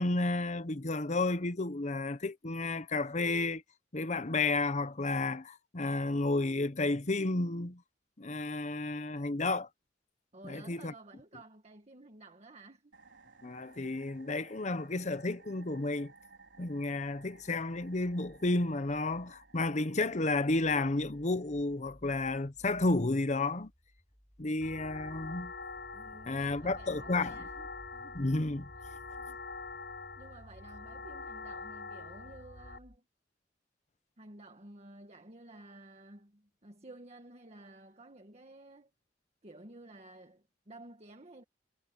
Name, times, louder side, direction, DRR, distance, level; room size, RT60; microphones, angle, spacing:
voice 1, 0.0-3.6 3.9-7.8 8.2-9.7 10.4-10.9 13.4-16.1 16.6-23.7 24.4-25.5 26.3-27.4 28.1-28.7, left 2 dB, 40° left, 1.0 m, -32 dB
voice 2, 10.3-12.9 25.9-28.3 28.9-29.4 30.2-33.1 34.2-38.9 39.4-41.4, right 2 dB, 35° right, 1.7 m, -53 dB
sound 1, 12.9-21.7, right 4 dB, 80° right, 4.6 m, -60 dB
sound 2, 16.2-33.0, equal, 10° left, 4.5 m, -60 dB
sound 3, 24.6-32.8, left 3 dB, 70° left, 4.5 m, -45 dB
head